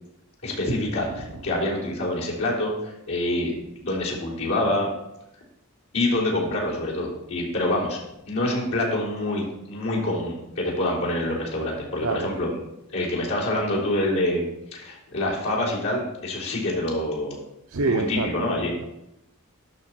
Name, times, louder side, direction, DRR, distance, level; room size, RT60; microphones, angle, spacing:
voice 1, 0.4-4.9 5.9-8.0 8.3-12.6 12.9-14.5 14.7-17.4 17.8-18.7, left 1 dB, 80° left, -6 dB, 3.7 m, -26 dB
voice 2, 17.7-18.3, right 3 dB, 65° right, 5 dB, 0.6 m, -25 dB
12.5 x 5.8 x 4.4 m, 0.84 s
head